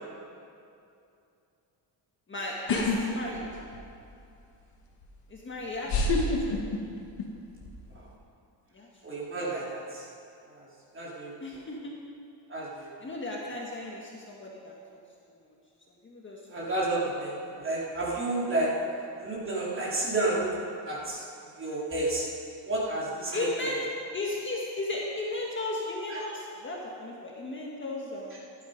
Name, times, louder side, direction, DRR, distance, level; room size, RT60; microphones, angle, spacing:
voice 1, 2.3-3.4 5.3-6.6 8.7-8.9 9.2-9.3 11.4-11.9 13.0-15.0 15.3-15.5 15.9-16.7 18.8-18.9 23.3-23.8 24.1-28.5, left 2 dB, 25° left, -3 dB, 1.6 m, -35 dB
sound 1, 2.7-3.0 3.4-4.0 5.0-5.1 5.9-7.2 7.5-8.0, left 3 dB, 65° left, 2.0 m, -27 dB
voice 2, 9.0-10.1 10.5-10.6 10.9-11.6 12.5-12.9 16.5-18.8 19.2-20.6 20.8-21.2 21.6-22.2 22.7-23.7 26.1-26.2, right 2 dB, 30° right, -6 dB, 3.6 m, -31 dB
14.5 x 11.5 x 5.2 m, 2.6 s
cardioid pair, 155°, 44 cm